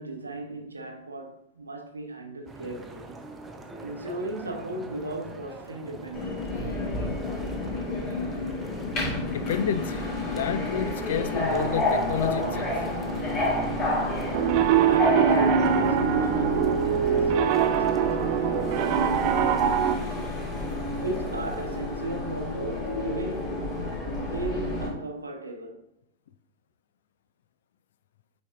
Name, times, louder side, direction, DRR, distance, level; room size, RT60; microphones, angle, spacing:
voice 1, 0.0-3.2 3.8-6.6 14.8-20.4 21.0-23.7 24.2-25.8, right 1 dB, 80° right, 0.8 m, -36 dB
sound 1, 2.5-21.8, right 2 dB, 15° right, 0.8 m, -45 dB
Subway metro underground, 6.1-24.9, left 2 dB, 35° left, 2.5 m, -30 dB
voice 2, 9.3-12.9, left 8 dB, 60° left, 0.3 m, -30 dB
Piano, 14.3-20.0, right 8 dB, 45° right, 0.4 m, -23 dB
8.1 x 5.1 x 2.4 m
figure-of-eight pair, 90°, 0 cm